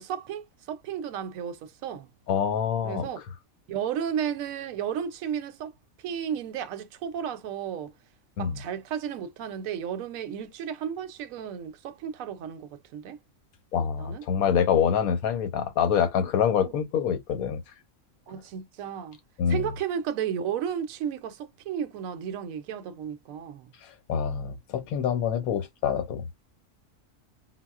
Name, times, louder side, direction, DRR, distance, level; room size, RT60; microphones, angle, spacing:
voice 1, 0.0-2.1 2.8-3.2 3.7-5.7 6.0-7.9 8.4-13.2 14.0-14.2 16.6-16.7 18.3-19.2 19.5-23.7, right 8 dB, 75° right, 1.0 m, -33 dB
voice 2, 2.3-3.1 8.4-8.6 13.7-17.6 19.4-19.7 23.8-26.2, left 7 dB, 90° left, 1.2 m, -26 dB
4.0 x 2.0 x 2.3 m
omnidirectional pair, 1.4 m